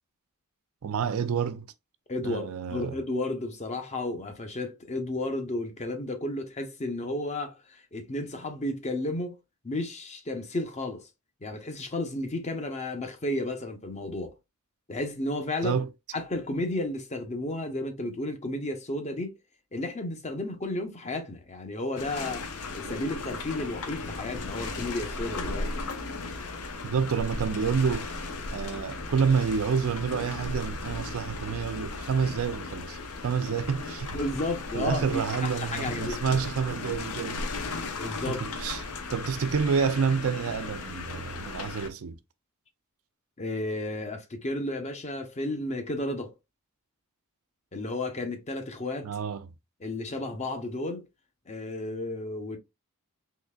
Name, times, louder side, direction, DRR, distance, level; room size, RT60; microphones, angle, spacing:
voice 1, 0.8-1.7 2.2-3.0 15.6-15.9 26.8-28.0 28.5-34.2 34.7-37.5 38.3-42.2 49.0-49.5, right 6 dB, 65° right, 0.4 m, -28 dB
voice 2, 2.1-9.4 9.6-11.1 11.4-14.3 14.9-15.8 16.1-19.3 19.7-25.7 34.1-36.4 38.0-38.4 38.9-39.0 43.4-46.3 47.7-49.1 49.8-51.0 51.5-52.6, left 2 dB, 30° left, 0.6 m, -33 dB
sound 1, 22.0-41.9, left 3 dB, 75° left, 0.6 m, -36 dB
3.8 x 3.1 x 2.2 m
head